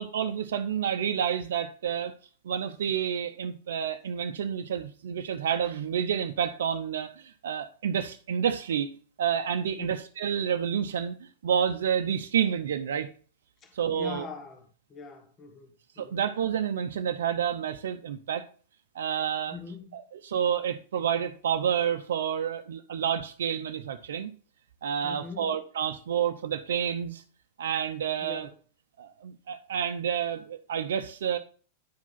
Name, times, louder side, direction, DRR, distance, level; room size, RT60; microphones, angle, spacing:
voice 1, 0.0-2.1 2.4-8.9 9.2-13.1 13.7-14.3 16.0-18.4 18.9-19.5 19.9-24.3 24.8-27.2 27.6-28.5 29.0-31.4, right 8 dB, 75° right, 0.7 m, -29 dB
voice 2, 13.6-16.2 19.5-20.0 25.0-25.5 28.2-28.6, left 5 dB, 30° left, 1.8 m, -43 dB
10.5 x 4.9 x 3.9 m
hypercardioid pair, 105°, 0 cm